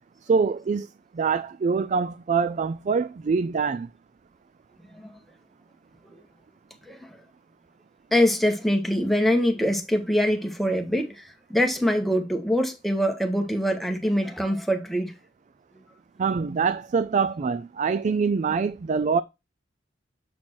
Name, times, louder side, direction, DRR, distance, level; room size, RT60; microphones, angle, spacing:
voice 1, 0.2-0.9 1.1-3.9 16.2-19.2, right 5 dB, 40° right, 0.3 m, -24 dB
voice 2, 6.9-7.2 8.1-15.1, equal, ahead, 1.2 m, -24 dB
7.5 x 4.3 x 4.4 m
head